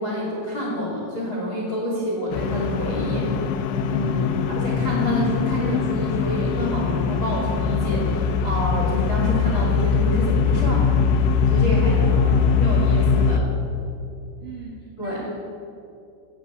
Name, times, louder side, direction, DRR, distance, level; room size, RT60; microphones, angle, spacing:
voice 1, 0.0-3.3 3.9-4.3 4.6-10.9 11.4-12.0 12.6-13.5 15.0-15.2, left 1 dB, 40° left, -3 dB, 1.8 m, -28 dB
sound 1, 2.3-13.4, left 5 dB, 80° left, 2.7 m, -21 dB
voice 2, 4.1-4.5 11.9-12.5 14.4-15.3, right 3 dB, 65° right, -4 dB, 2.1 m, -39 dB
16.0 x 5.9 x 8.2 m, 2.5 s
omnidirectional pair, 5.9 m